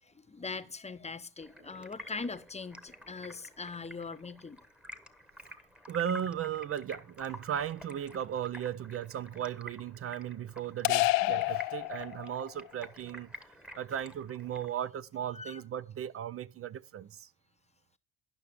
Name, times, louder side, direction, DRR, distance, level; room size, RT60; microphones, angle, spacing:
voice 1, 0.1-4.6 15.3-15.6, left 4 dB, 15° left, 0.7 m, -41 dB
Stream, 1.4-14.8, equal, ahead, 1.1 m, -51 dB
voice 2, 5.9-13.3 13.7-17.3, right 9 dB, 30° right, 0.4 m, -36 dB
sound 1, 10.8-12.5, left 21 dB, 70° left, 0.6 m, -28 dB
11.0 x 5.7 x 4.8 m
supercardioid pair, 75°, 47 cm